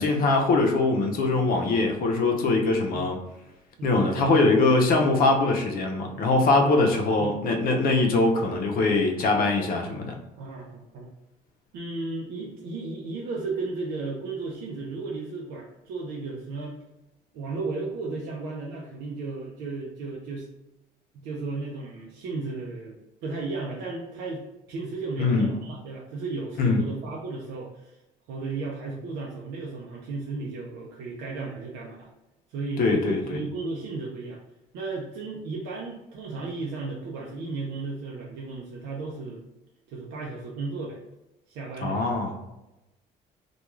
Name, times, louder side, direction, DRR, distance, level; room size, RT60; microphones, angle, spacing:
voice 1, 0.0-3.2 3.8-10.2 25.2-25.5 26.6-26.8 32.8-33.4 41.8-42.3, left 3 dB, 60° left, 3 dB, 0.6 m, -22 dB
voice 2, 3.8-4.6 6.6-7.4 7.7-7.9 10.4-11.1 11.7-16.8 17.3-20.5 21.1-28.0 28.3-32.1 32.5-34.4 34.7-39.4 39.9-41.0 41.5-42.4, right 3 dB, 85° right, -3 dB, 0.5 m, -34 dB
2.3 x 2.3 x 3.0 m, 0.95 s
cardioid pair, 110°, 17 cm